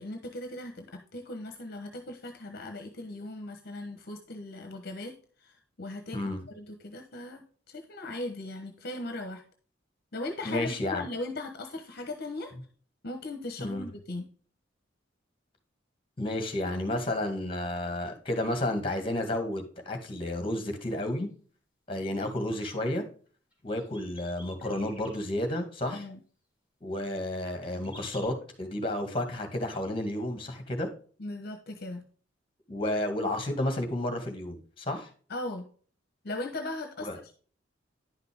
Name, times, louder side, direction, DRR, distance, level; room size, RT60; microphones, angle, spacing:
voice 1, 0.0-6.3 6.5-9.4 10.1-12.5 13.0-14.2 25.9-26.2 31.2-32.0 35.3-35.6 36.2-37.3, left 2 dB, 55° left, 6 dB, 1.1 m, -38 dB
voice 2, 10.4-11.0 13.6-13.9 16.2-21.3 21.9-23.0 23.6-26.0 26.8-30.9 32.7-35.1 37.0-37.2, left 1 dB, 30° left, 5 dB, 2.0 m, -31 dB
sound 1, 23.5-25.2 27.4-28.3, left 1 dB, 10° right, 3.9 m, -50 dB
10.5 x 5.9 x 3.5 m, 0.42 s
head